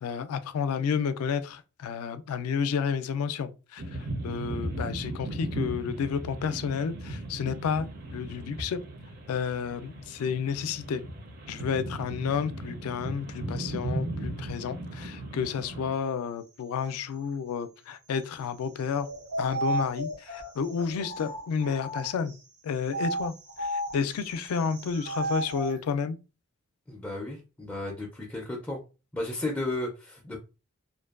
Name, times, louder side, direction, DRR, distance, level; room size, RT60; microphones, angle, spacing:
voice 1, 0.0-8.8 9.3-11.0 11.5-19.1 19.4-22.4 22.6-26.2, left 6 dB, 80° left, 0.3 m, -31 dB
sound 1, 3.8-15.9, right 1 dB, 45° right, 0.6 m, -37 dB
sound 2, 18.9-22.3 22.8-25.8, right 2 dB, 85° right, 0.7 m, -34 dB
voice 2, 26.9-28.8 29.1-30.4, left 2 dB, 10° left, 0.4 m, -34 dB
2.5 x 2.2 x 2.3 m
head